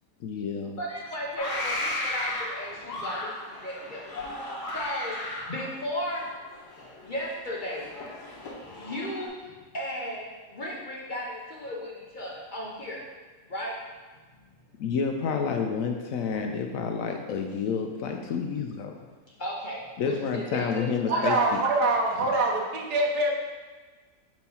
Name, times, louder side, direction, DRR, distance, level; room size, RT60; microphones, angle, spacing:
voice 1, 0.2-0.8 8.8-8.9 14.8-19.0 20.0-21.6 22.2-22.3, left 6 dB, 70° left, 4 dB, 0.9 m, -29 dB
voice 2, 0.8-4.1 4.4-5.2 5.4-6.3 7.0-7.9 8.7-13.0 13.5-13.8 19.4-21.2, equal, 40° left, -4 dB, 0.7 m, -35 dB
sound 1, 1.4-9.3, left 1 dB, 85° left, 1.6 m, -35 dB
voice 3, 21.1-23.3, right 2 dB, 90° right, 0 dB, 1.5 m, -24 dB
4.6 x 4.3 x 5.5 m, 1.4 s
omnidirectional pair, 1.7 m